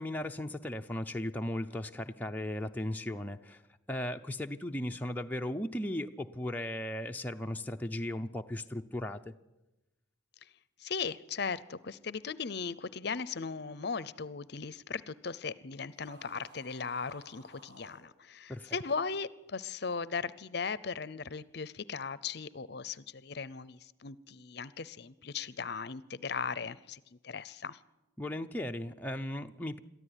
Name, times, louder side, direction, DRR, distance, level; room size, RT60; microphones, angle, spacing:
voice 1, 0.0-3.6 3.9-9.3 18.5-18.8 28.2-29.8, left 1 dB, 10° left, 3 dB, 0.6 m, -36 dB
voice 2, 10.8-27.8, left 5 dB, 55° left, 18 dB, 0.7 m, -38 dB
sound 1, 15.9-18.0, right 1 dB, 70° right, 5.4 m, -56 dB
22.5 x 14.0 x 9.9 m, 1.0 s
head